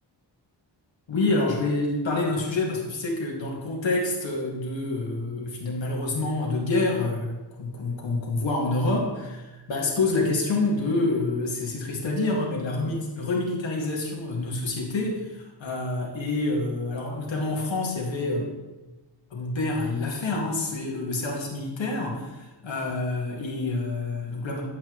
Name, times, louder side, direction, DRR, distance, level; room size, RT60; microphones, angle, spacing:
voice 1, 1.1-18.5 19.3-24.6, left 2 dB, 85° left, -2 dB, 2.2 m, -27 dB
10.5 x 8.3 x 3.2 m, 1.1 s
wide cardioid pair, 165°, 44 cm